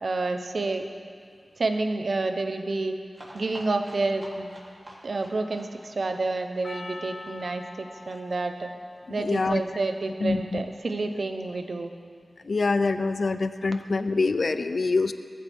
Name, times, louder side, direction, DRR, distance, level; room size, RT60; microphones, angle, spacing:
voice 1, 0.0-0.9 1.6-2.9 3.3-4.5 5.0-8.7 9.1-11.9, right 3 dB, 65° right, 6 dB, 1.0 m, -29 dB
sound 1, 3.1-8.7 9.0-9.1 9.3-9.4 9.6-9.7, right 1 dB, 30° right, 3.3 m, -48 dB
Percussion, 6.6-11.1, left 2 dB, 35° left, 0.8 m, -45 dB
voice 2, 9.1-9.6 10.2-10.6 12.4-15.1, left 3 dB, 65° left, 11 dB, 0.5 m, -25 dB
18.5 x 14.5 x 3.6 m, 2.1 s
wide cardioid pair, 85°, 0 cm